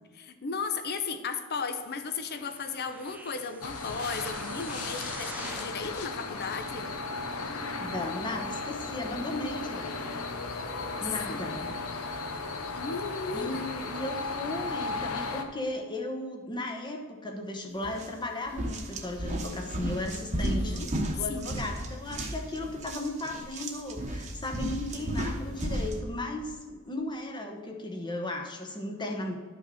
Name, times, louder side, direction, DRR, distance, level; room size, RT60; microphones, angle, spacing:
voice 1, 0.1-6.9 10.1-11.8 12.8-13.6 20.4-20.9 21.3-21.6, left 5 dB, 45° left, 9 dB, 0.7 m, -36 dB
sound 1, 2.3-5.8 6.4-6.5, right 2 dB, 5° right, 0.4 m, -44 dB
sound 2, 3.6-15.4, left 3 dB, 75° left, 0.8 m, -36 dB
voice 2, 7.6-10.1 11.0-11.6 13.3-29.3, left 1 dB, 20° left, 2 dB, 1.0 m, -36 dB
sound 3, 17.8-18.1 18.5-26.0, right 1 dB, 30° right, 1.1 m, -34 dB
11.5 x 5.8 x 4.1 m, 1.5 s
head